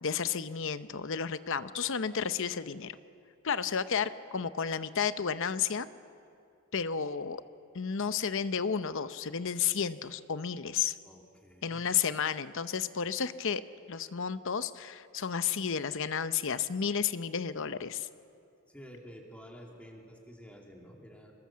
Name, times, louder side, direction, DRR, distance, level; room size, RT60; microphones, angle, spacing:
voice 1, 0.0-3.0 3.4-5.9 6.7-7.4 7.7-11.0 11.6-13.6 13.9-18.1, left 7 dB, 60° left, 13 dB, 0.8 m, -32 dB
voice 2, 11.0-11.8 18.7-21.3, equal, 5° left, 0 dB, 3.0 m, -50 dB
25.5 x 21.5 x 7.4 m, 2.5 s
head